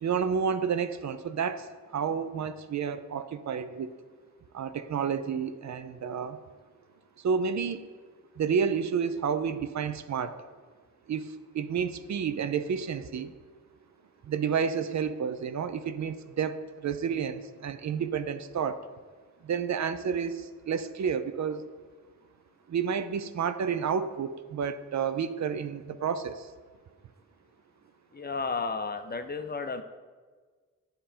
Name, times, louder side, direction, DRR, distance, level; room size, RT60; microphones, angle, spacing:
voice 1, 0.0-1.7 1.9-3.9 4.5-6.4 7.2-7.9 8.4-10.4 11.1-13.3 14.2-18.8 19.4-21.6 22.7-26.5, right 6 dB, 60° right, 11 dB, 0.4 m, -30 dB
voice 2, 28.1-29.8, left 4 dB, 30° left, 8 dB, 0.5 m, -33 dB
9.2 x 3.8 x 4.3 m, 1.5 s
cardioid pair, 65°, 31 cm